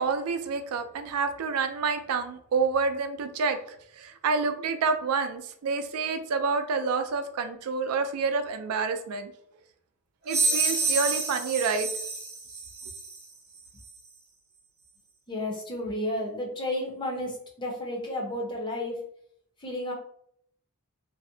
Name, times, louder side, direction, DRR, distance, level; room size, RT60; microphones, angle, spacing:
voice 1, 0.0-9.3 10.3-11.9, right 4 dB, 85° right, 7 dB, 0.4 m, -28 dB
sound 1, 10.3-13.3, right 3 dB, 50° right, 0.7 m, -28 dB
voice 2, 15.3-19.0 19.6-19.9, left 1 dB, 20° left, -1 dB, 0.6 m, -32 dB
2.5 x 2.0 x 2.6 m, 0.68 s
head